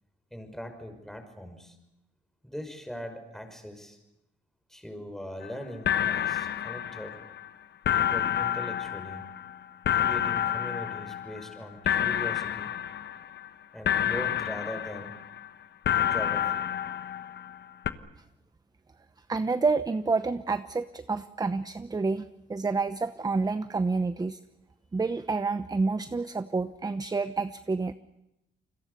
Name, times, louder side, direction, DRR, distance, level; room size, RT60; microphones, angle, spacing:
voice 1, 0.3-1.8 2.4-4.0 4.7-7.2 7.9-9.3 9.9-12.7 13.7-15.1 16.0-16.6, equal, ahead, 6 dB, 5.8 m, -40 dB
sound 1, 5.4-5.5 5.9-7.5 7.9-11.6 11.9-13.5 13.9-15.5 15.9-17.6 17.9-18.0, left 10 dB, 60° left, 1.3 m, -29 dB
voice 2, 19.3-24.4 24.9-27.9, right 4 dB, 20° right, 12 dB, 0.9 m, -29 dB
29.0 x 22.0 x 6.8 m, 0.88 s
cardioid pair, 90°, 20 cm